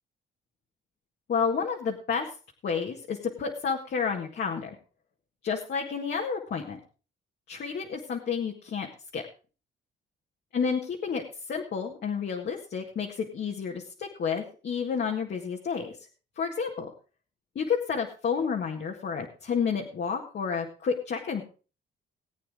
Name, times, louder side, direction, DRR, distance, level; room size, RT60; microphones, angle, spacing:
voice 1, 1.3-2.3 2.6-4.8 5.4-6.8 7.5-8.9 9.1-9.3 10.5-11.2 11.5-15.9 16.4-16.9 17.6-21.4, left 6 dB, 55° left, 0 dB, 1.8 m, -30 dB
19.0 x 8.5 x 3.7 m, 0.35 s
cardioid pair, 90°, 20 cm